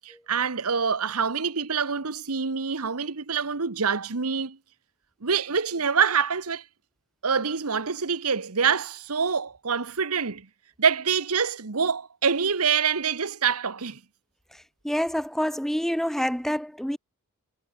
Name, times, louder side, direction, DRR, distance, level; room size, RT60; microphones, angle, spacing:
voice 1, 0.0-4.6 5.2-6.6 7.2-10.5 10.8-14.0, right 6 dB, 85° right, 1.2 m, -26 dB
voice 2, 14.8-17.0, equal, ahead, 0.6 m, -27 dB
head